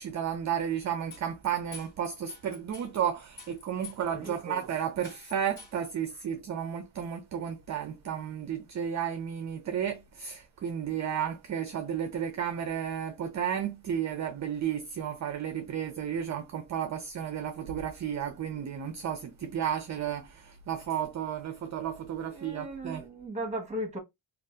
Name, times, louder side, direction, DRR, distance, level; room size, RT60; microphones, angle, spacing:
voice 1, 0.0-23.0, right 9 dB, 40° right, 0.4 m, -33 dB
sound 1, 1.1-3.0 3.4-4.3 4.6-4.7 5.0-5.8, left 4 dB, 45° left, 1.5 m, -47 dB
voice 2, 4.1-4.7 22.3-24.0, right 1 dB, 15° right, 1.1 m, -37 dB
2.6 x 2.4 x 3.2 m
wide cardioid pair, 140°, 46 cm